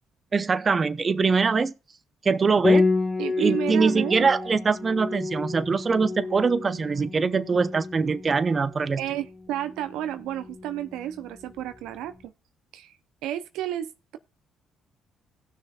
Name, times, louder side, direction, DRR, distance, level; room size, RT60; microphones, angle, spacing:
voice 1, 0.3-1.7 2.2-2.9 3.4-9.0, right 4 dB, 40° right, 0.8 m, -23 dB
Piano, 2.6-12.0, left 3 dB, 30° left, 1.7 m, -29 dB
voice 2, 3.2-4.3 9.0-12.3 12.7-12.9 13.2-14.2, right 11 dB, 75° right, 0.6 m, -31 dB
17.0 x 6.4 x 2.4 m
hypercardioid pair, 55°, 0 cm